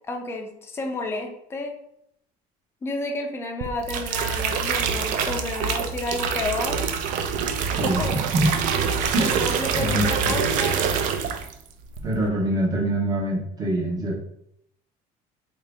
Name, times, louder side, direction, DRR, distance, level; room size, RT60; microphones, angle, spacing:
voice 1, 0.1-1.8 2.8-6.8 7.8-8.1 9.2-10.8, left 2 dB, 15° left, 2 dB, 0.4 m, -31 dB
sound 1, 3.6-11.6 11.9-12.3, right 6 dB, 65° right, 0.4 m, -25 dB
voice 2, 7.8-8.5 9.1-9.3 9.7-10.3 12.0-14.2, right 1 dB, 25° right, -2 dB, 0.8 m, -24 dB
2.9 x 2.7 x 3.4 m, 0.74 s
cardioid pair, 165°, 15 cm